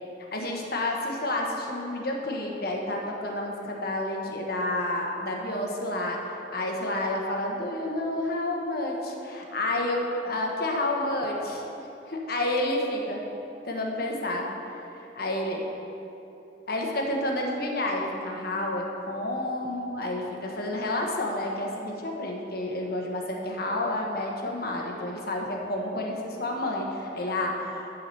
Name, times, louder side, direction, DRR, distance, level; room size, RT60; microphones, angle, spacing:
voice 1, 0.3-11.7 12.1-13.2 13.6-14.5 14.9-15.6 16.7-27.9, left 1 dB, 55° left, 0 dB, 1.1 m, -30 dB
9.7 x 4.8 x 6.6 m, 3.0 s
head